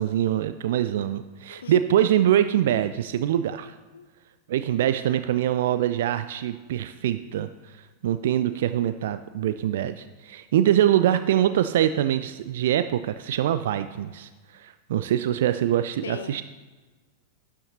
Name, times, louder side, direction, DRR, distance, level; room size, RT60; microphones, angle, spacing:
voice 1, 0.0-3.7 4.5-16.4, right 11 dB, 55° right, 11 dB, 0.3 m, -24 dB
voice 2, 1.5-2.3 3.9-4.1 4.5-4.7 16.0-16.4, left 7 dB, 65° left, 13 dB, 0.4 m, -39 dB
12.0 x 9.8 x 2.8 m, 1.3 s
figure-of-eight pair, 90°, 0 cm